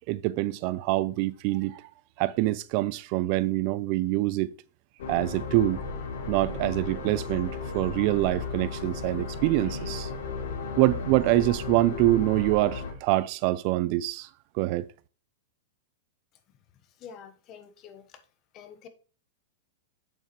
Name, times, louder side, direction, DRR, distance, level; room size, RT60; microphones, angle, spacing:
voice 1, 0.1-1.8 2.2-4.5 5.1-5.8 6.3-10.1 10.8-14.3 14.5-14.9, right 17 dB, 45° right, 0.4 m, -25 dB
sound 1, 5.0-12.9, left 4 dB, 75° left, 3.0 m, -35 dB
voice 2, 17.0-18.2 18.5-18.9, left 7 dB, 35° left, 1.2 m, -47 dB
8.0 x 7.1 x 3.1 m
hypercardioid pair, 140°, 0 cm